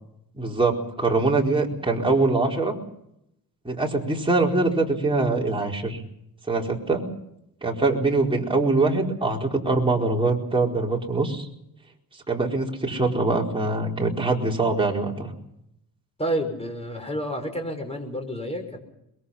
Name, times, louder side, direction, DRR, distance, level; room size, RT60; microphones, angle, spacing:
voice 1, 0.3-2.7 3.6-6.0 6.5-7.1 7.6-11.5 12.3-15.3, right 3 dB, 15° right, -1 dB, 4.5 m, -23 dB
voice 2, 16.2-18.8, equal, 15° left, 5 dB, 5.9 m, -29 dB
23.0 x 22.5 x 5.7 m, 0.79 s
cardioid pair, 100°, 37 cm